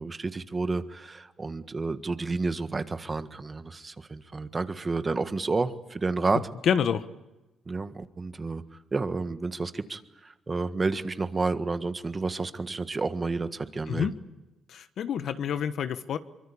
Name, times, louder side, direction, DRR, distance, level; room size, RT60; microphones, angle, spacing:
voice 1, 0.0-6.4 7.7-8.6 8.9-14.1, right 3 dB, 30° right, 10 dB, 1.6 m, -30 dB
voice 2, 6.3-7.1 13.9-14.1 14.7-16.2, left 8 dB, 65° left, 11 dB, 1.3 m, -28 dB
24.0 x 23.5 x 8.6 m, 1.0 s
cardioid pair, 90°, 0 cm